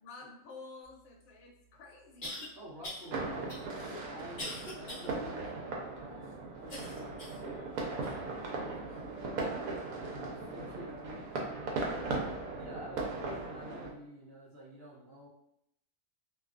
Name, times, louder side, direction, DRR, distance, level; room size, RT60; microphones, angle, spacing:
voice 1, 0.0-2.4 5.8-5.9 13.2-13.7, left 3 dB, 75° left, 0 dB, 1.0 m, -51 dB
sound 1, 1.2-1.3 2.2-2.5 2.8-3.1 3.5-5.1 5.6-5.7 6.7-7.4 8.0-8.1 8.9-9.0, left 1 dB, 40° left, 0.7 m, -42 dB
voice 2, 2.5-6.3 6.6-9.0 9.4-12.2 12.5-15.3, equal, 55° right, -6 dB, 0.7 m, -50 dB
sound 2, 3.1-13.9, right 3 dB, 80° right, 1.1 m, -38 dB
2.6 x 2.3 x 2.3 m, 0.79 s
omnidirectional pair, 1.5 m